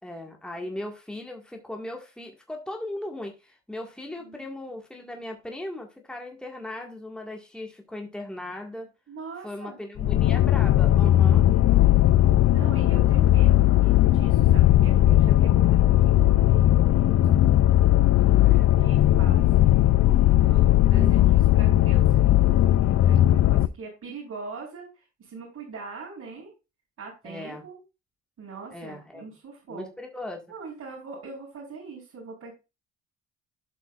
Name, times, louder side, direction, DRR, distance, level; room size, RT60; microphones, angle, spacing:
voice 1, 0.0-8.9 9.4-11.5 18.4-18.8 20.9-21.4 27.2-27.6 28.7-29.2 29.7-30.4, left 1 dB, 5° left, 1.8 m, -38 dB
voice 2, 9.1-9.8 11.3-12.0 12.5-17.5 18.8-19.7 20.3-26.5 27.0-27.8 28.4-29.9 30.5-32.5, right 4 dB, 60° right, 4.4 m, -42 dB
sound 1, 10.0-23.7, left 13 dB, 55° left, 0.5 m, -18 dB
12.0 x 5.8 x 2.5 m
cardioid pair, 90°, 30 cm